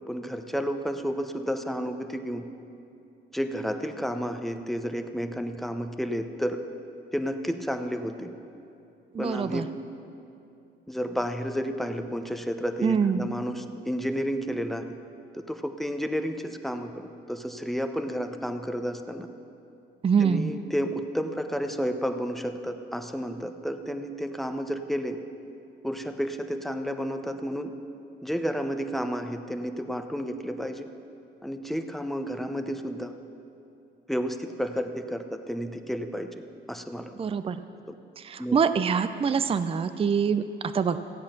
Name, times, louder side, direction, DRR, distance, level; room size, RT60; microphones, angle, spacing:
voice 1, 0.1-2.4 3.3-6.6 7.1-8.3 9.2-9.7 10.9-14.8 15.3-19.3 20.2-25.2 25.8-27.7 28.2-30.9 31.4-33.1 34.1-36.3 36.7-37.1 37.9-38.0 38.4-38.6, equal, ahead, 6 dB, 0.8 m, -31 dB
voice 2, 9.1-9.7 12.8-13.3 20.0-20.5 37.2-37.6 38.2-41.0, right 6 dB, 30° right, 11 dB, 0.5 m, -25 dB
15.0 x 8.5 x 5.9 m, 2.7 s
cardioid pair, 90°, 20 cm